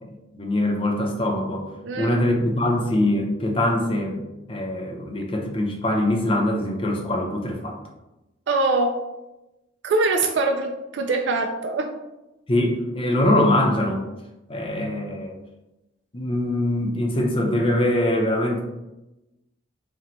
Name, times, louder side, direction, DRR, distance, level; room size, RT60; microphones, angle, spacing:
voice 1, 0.0-1.7 2.0-4.2 4.5-7.8 12.5-14.0 14.5-15.3 16.1-18.6, left 1 dB, 30° left, 1 dB, 0.6 m, -23 dB
voice 2, 1.8-2.2 8.5-9.0 9.8-11.9, right 3 dB, 70° right, 4 dB, 0.4 m, -23 dB
4.2 x 2.2 x 3.9 m, 0.98 s
head